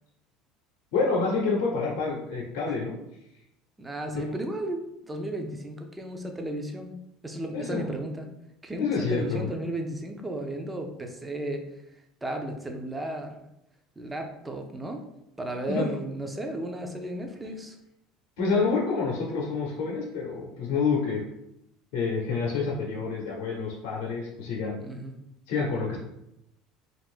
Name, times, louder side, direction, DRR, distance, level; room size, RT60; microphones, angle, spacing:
voice 1, 0.9-2.9 4.1-4.4 7.5-7.9 8.8-9.4 15.7-15.8 18.4-21.2 21.9-24.8 25.5-26.0, left 4 dB, 75° left, -3 dB, 0.7 m, -28 dB
voice 2, 3.8-8.3 8.6-11.7 12.2-13.4 14.0-15.0 15.4-17.8 24.8-25.1, right 1 dB, 15° right, 4 dB, 0.5 m, -34 dB
2.5 x 2.5 x 3.5 m, 0.83 s
supercardioid pair, 95°, 0 cm